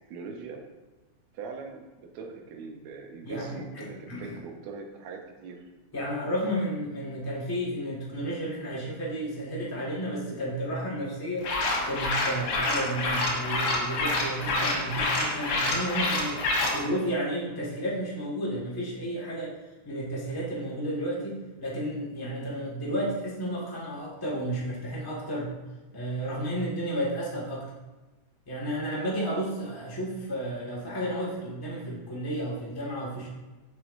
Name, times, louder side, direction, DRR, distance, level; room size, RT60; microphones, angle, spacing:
voice 1, 0.1-0.6 1.3-5.7, right 4 dB, 75° right, 3 dB, 2.0 m, -41 dB
voice 2, 3.2-4.4 5.9-11.5 11.8-16.4 16.7-19.6 19.8-25.5 25.9-27.6 28.5-33.3, right 1 dB, 15° left, -6 dB, 0.9 m, -32 dB
sound 1, 11.4-16.8, left 2 dB, 70° left, 2.3 m, -27 dB
7.1 x 6.3 x 2.6 m, 1.2 s
omnidirectional pair, 3.3 m